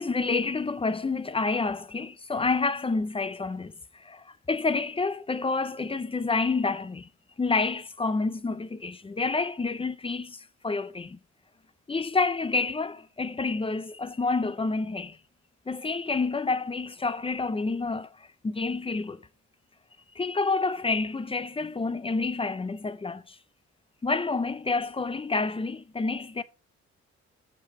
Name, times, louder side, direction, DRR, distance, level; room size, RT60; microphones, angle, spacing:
voice 1, 0.0-7.1 7.4-11.2 11.9-15.2 15.7-19.2 20.1-23.4 24.0-26.4, left 3 dB, 20° left, 0.6 m, -29 dB
6.5 x 6.0 x 4.8 m
cardioid pair, 90°, 30 cm